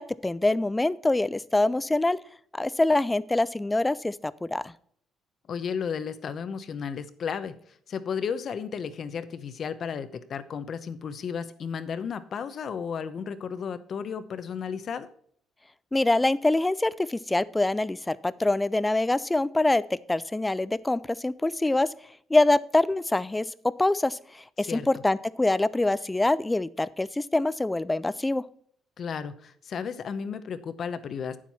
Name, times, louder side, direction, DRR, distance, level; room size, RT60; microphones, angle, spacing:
voice 1, 0.0-2.2 2.5-4.7 15.9-19.8 20.1-21.9 22.3-23.5 23.8-28.4, left 2 dB, 10° left, 18 dB, 0.4 m, -25 dB
voice 2, 5.5-7.5 7.9-15.1 24.6-24.9 29.0-31.4, left 6 dB, 50° left, 12 dB, 0.8 m, -33 dB
8.9 x 7.4 x 4.2 m, 0.62 s
cardioid pair, 110°, 0 cm